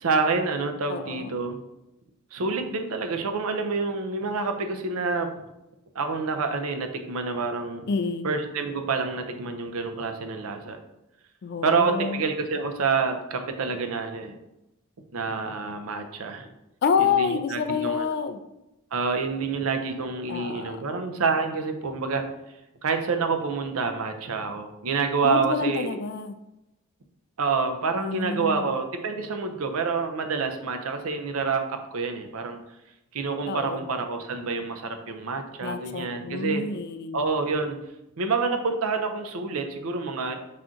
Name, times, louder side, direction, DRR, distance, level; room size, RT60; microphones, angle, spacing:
voice 1, 0.0-1.6 2.3-5.3 5.9-7.9 8.2-10.8 11.6-14.3 15.1-16.5 17.0-18.1 18.9-22.3 22.8-26.0 27.4-32.6 33.1-36.7 37.1-37.8 38.2-40.4, right 4 dB, 75° right, 6 dB, 0.5 m, -27 dB
voice 2, 0.9-1.4 7.9-8.3 11.4-12.2 16.8-18.4 20.3-20.9 25.2-26.4 27.9-28.7 33.5-33.8 35.6-37.2, left 5 dB, 50° left, 9 dB, 0.3 m, -28 dB
5.8 x 2.5 x 3.7 m, 0.91 s
head